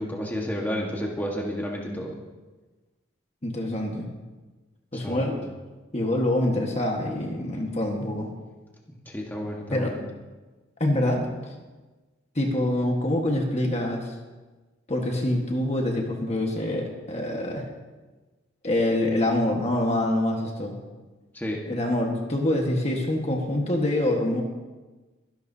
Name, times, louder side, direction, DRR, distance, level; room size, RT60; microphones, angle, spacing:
voice 1, 0.0-2.1 4.9-5.4 9.0-10.0 21.3-21.6, equal, 10° left, -2 dB, 1.4 m, -31 dB
voice 2, 3.4-4.1 4.9-5.3 5.9-8.3 9.7-9.9 10.8-11.5 12.3-14.2 14.9-17.7 18.6-20.7 21.7-24.4, left 1 dB, 30° left, 1 dB, 1.5 m, -25 dB
23.0 x 11.5 x 2.8 m, 1.2 s
head